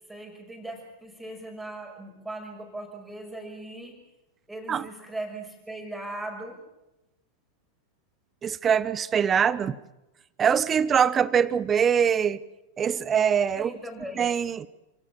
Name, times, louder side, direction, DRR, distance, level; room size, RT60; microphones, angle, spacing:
voice 1, 0.1-4.0 4.5-6.6 13.6-14.3, right 1 dB, 5° right, 5.9 m, -39 dB
voice 2, 8.4-9.8 10.4-12.4 12.8-13.7 14.2-14.7, right 7 dB, 25° right, 0.8 m, -23 dB
28.0 x 17.5 x 7.2 m
figure-of-eight pair, 90°, 0 cm